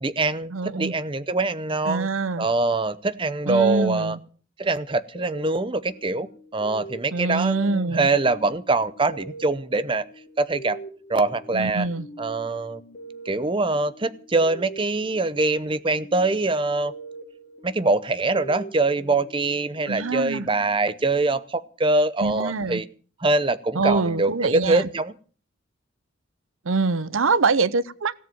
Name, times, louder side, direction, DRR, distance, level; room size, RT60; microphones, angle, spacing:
voice 1, 0.0-2.1 2.4-4.2 4.6-6.3 6.5-10.0 10.4-10.8 11.1-11.9 12.2-12.8 13.3-16.9 17.6-22.9 23.2-25.1, right 3 dB, 25° right, 0.7 m, -23 dB
voice 2, 0.5-0.9 1.9-2.5 3.5-4.2 7.1-8.1 11.5-12.1 19.9-20.5 22.2-22.8 23.7-24.9 26.6-28.1, right 3 dB, 85° right, 0.8 m, -24 dB
sound 1, 5.1-21.5, right 2 dB, 50° left, 3.3 m, -44 dB
17.0 x 7.6 x 9.2 m
head